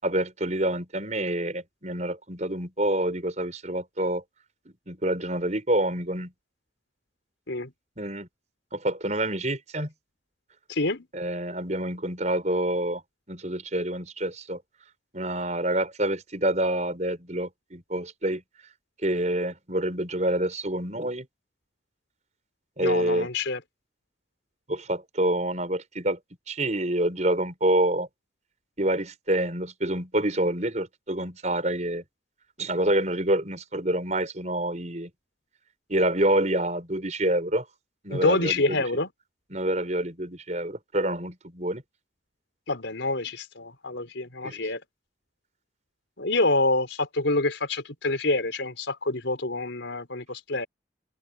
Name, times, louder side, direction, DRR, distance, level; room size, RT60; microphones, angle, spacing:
voice 1, 0.0-4.2 4.7-6.3 8.0-8.3 8.7-9.9 11.1-13.0 13.3-14.6 15.1-18.4 19.0-21.3 22.8-23.3 24.7-26.2 26.5-28.1 28.8-32.0 32.6-35.1 35.9-37.7 38.0-38.8 39.5-41.8 44.4-44.6, right 1 dB, 40° right, 5.7 m, -27 dB
voice 2, 10.7-11.1 22.8-23.6 38.1-39.1 42.7-44.8 46.2-50.7, left 2 dB, 85° left, 4.3 m, -27 dB
head